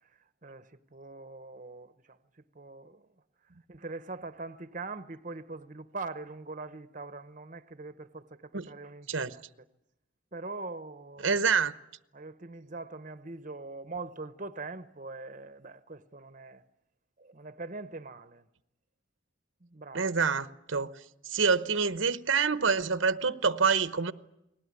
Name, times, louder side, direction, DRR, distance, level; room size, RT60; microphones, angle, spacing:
voice 1, 0.4-2.2 2.5-3.0 3.7-9.4 10.3-11.4 12.1-16.6 17.2-18.4 19.6-20.1, right 3 dB, 40° right, 0.9 m, -42 dB
voice 2, 11.2-11.7 19.9-20.9 21.3-24.1, right 5 dB, 70° right, 1.0 m, -26 dB
30.0 x 20.0 x 9.7 m
head